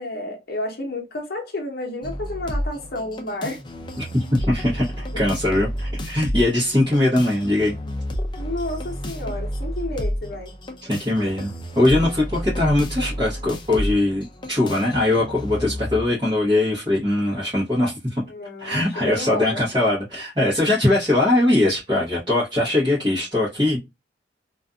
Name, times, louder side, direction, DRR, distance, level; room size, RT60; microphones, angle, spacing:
voice 1, 0.0-3.6 8.4-10.5 18.2-19.6, left 1 dB, 60° left, 0.8 m, -31 dB
sound 1, 2.0-16.0, equal, 25° left, 0.5 m, -31 dB
voice 2, 4.0-7.7 10.8-11.5 11.8-18.2 18.6-23.8, left 1 dB, 25° right, 1.0 m, -21 dB
2.5 x 2.5 x 2.2 m
head